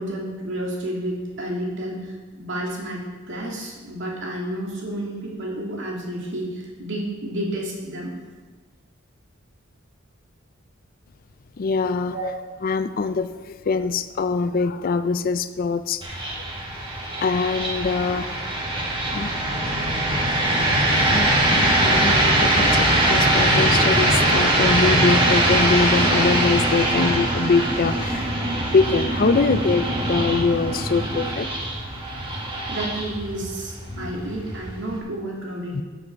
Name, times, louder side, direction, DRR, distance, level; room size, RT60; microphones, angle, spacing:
voice 1, 0.0-8.2 12.1-12.3 32.7-35.8, right 1 dB, 60° right, -2 dB, 2.5 m, -31 dB
voice 2, 11.6-12.3 12.6-16.4 17.1-18.4 19.1-19.3 20.9-31.5 32.2-32.6 33.9-34.2 35.7-35.8, left 4 dB, 45° left, 11 dB, 0.4 m, -23 dB
sound 1, 16.0-35.0, right 1 dB, 25° right, 1.8 m, -22 dB
13.0 x 7.3 x 4.7 m, 1.3 s
head